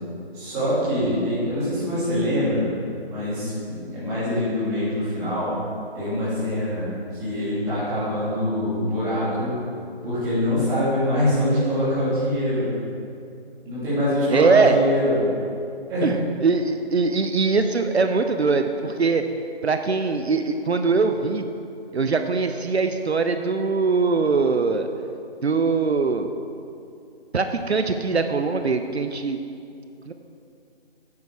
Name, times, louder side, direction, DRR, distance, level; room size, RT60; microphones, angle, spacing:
voice 1, 0.3-2.7 3.1-5.5 5.9-6.9 7.2-9.5 10.0-12.7 13.6-15.2 15.9-16.1, equal, 10° right, -12 dB, 2.8 m, -24 dB
voice 2, 14.3-14.8 16.0-21.5 21.9-24.9 25.4-26.3 27.3-29.4 30.1-30.2, right 4 dB, 80° right, 7 dB, 0.7 m, -22 dB
9.4 x 8.4 x 4.7 m, 2.5 s
figure-of-eight pair, 155°, 32 cm